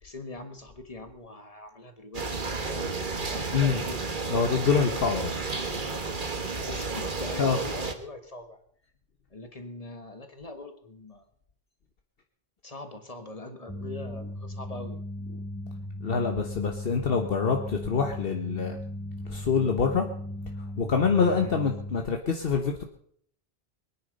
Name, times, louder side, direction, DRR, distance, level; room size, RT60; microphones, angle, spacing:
voice 1, 0.0-3.0 3.2-4.1 5.1-5.3 6.7-8.6 9.3-11.2 12.6-15.0 21.4-21.6, left 2 dB, 35° left, 8 dB, 1.7 m, -42 dB
sound 1, 2.1-7.9, right 3 dB, 50° right, 1.6 m, -32 dB
voice 2, 4.3-5.3 7.4-7.6 16.0-18.8 19.2-20.1 20.6-22.8, left 5 dB, 65° left, 3 dB, 1.3 m, -25 dB
sound 2, 13.7-22.0, left 1 dB, 15° left, 1.9 m, -37 dB
22.0 x 9.9 x 5.3 m, 0.64 s
omnidirectional pair, 1.1 m